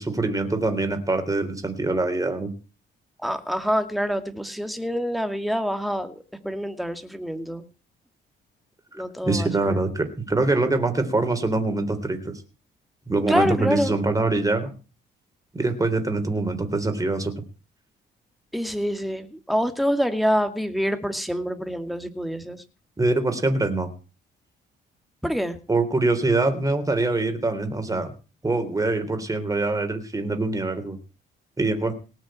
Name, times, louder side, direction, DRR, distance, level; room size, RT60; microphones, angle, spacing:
voice 1, 0.0-2.5 9.2-12.3 13.1-14.7 15.5-17.3 23.0-23.9 25.7-28.1 28.4-31.0 31.6-31.9, right 2 dB, 15° right, 7 dB, 3.5 m, -24 dB
voice 2, 3.2-7.7 8.9-9.8 13.3-13.9 18.5-22.6 25.2-25.6, equal, ahead, 8 dB, 2.3 m, -26 dB
18.5 x 6.4 x 8.9 m, 0.35 s
cardioid pair, 90°, 20 cm